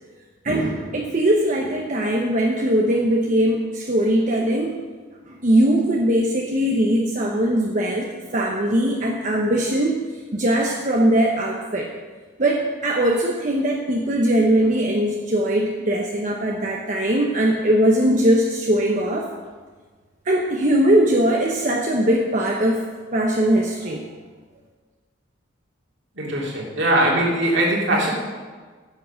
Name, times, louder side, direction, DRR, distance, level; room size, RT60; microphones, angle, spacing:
voice 1, 0.4-4.7 5.3-10.0 10.3-11.9 12.4-19.3 20.2-22.8 23.1-24.0, right 1 dB, 40° right, 0 dB, 0.9 m, -20 dB
voice 2, 26.1-28.1, right 1 dB, 65° right, -3 dB, 3.0 m, -20 dB
10.5 x 7.6 x 6.3 m, 1.5 s
head